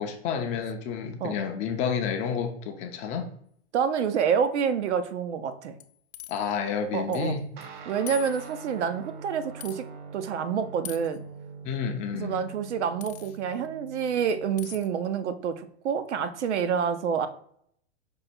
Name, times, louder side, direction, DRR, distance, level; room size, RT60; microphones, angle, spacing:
voice 1, 0.0-3.3 6.3-7.4 11.6-12.4, left 6 dB, 20° left, 5 dB, 0.4 m, -30 dB
voice 2, 3.7-5.8 6.9-7.4 7.9-9.9 10.1-11.2 12.1-17.3, right 7 dB, 85° right, 10 dB, 0.7 m, -28 dB
sound 1, 5.8-6.5 7.1-7.3 7.6-7.7 8.1-8.7 9.6-9.8 10.8-11.2 13.0-13.4 14.6-14.9, left 12 dB, 65° left, 0.6 m, -42 dB
Guitar, 7.6-15.3, right 5 dB, 45° right, 0.7 m, -44 dB
5.3 x 2.2 x 4.2 m, 0.65 s
hypercardioid pair, 135°, 34 cm